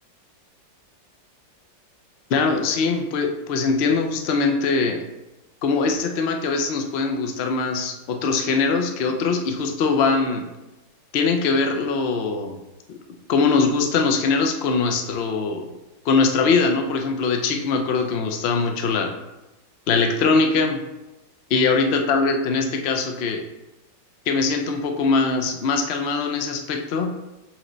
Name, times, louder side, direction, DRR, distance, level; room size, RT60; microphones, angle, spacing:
voice 1, 2.3-5.0 5.6-10.4 11.1-12.6 12.9-13.0 13.3-15.7 16.0-19.1 19.9-20.8 21.5-23.4 24.3-27.2, left 4 dB, 70° left, 4 dB, 0.6 m, -22 dB
7.7 x 3.1 x 3.9 m, 1.0 s
omnidirectional pair, 2.0 m